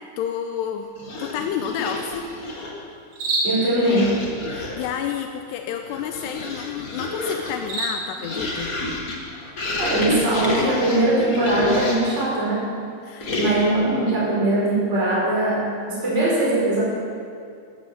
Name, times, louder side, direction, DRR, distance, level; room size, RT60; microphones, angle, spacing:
voice 1, 0.2-0.9 1.2-2.3 4.5-8.7 13.0-13.4, left 8 dB, 85° left, 5 dB, 2.7 m, -30 dB
sound 1, 1.0-2.9 3.7-5.0 5.7-12.2 13.2-13.9, left 2 dB, 65° left, 0.8 m, -29 dB
sound 2, 2.1-12.4, right 2 dB, 70° right, 5.4 m, -35 dB
voice 2, 3.4-4.1 9.8-12.7 13.4-16.8, right 1 dB, 15° right, -6 dB, 5.2 m, -21 dB
14.5 x 13.5 x 7.4 m, 2.4 s
omnidirectional pair, 5.0 m